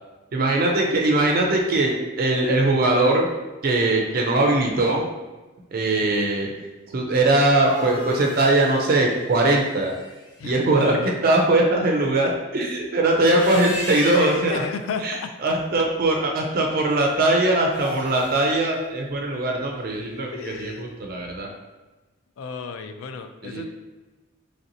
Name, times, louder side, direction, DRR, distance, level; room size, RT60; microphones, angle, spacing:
voice 1, 0.3-3.3 3.6-5.0 5.7-6.5 6.9-9.9 10.4-11.0 11.2-14.5 15.0-15.1 15.4-21.5 23.4-23.7, right 2 dB, 45° right, 0 dB, 0.4 m, -21 dB
voice 2, 6.0-6.7 10.4-11.2 14.2-15.3 20.3-20.9 22.4-23.7, left 5 dB, 80° left, 7 dB, 0.3 m, -34 dB
sound 1, 7.6-10.4 13.1-14.6 17.6-18.5, equal, 60° left, 1.2 m, -34 dB
3.1 x 2.8 x 2.6 m, 1.2 s
head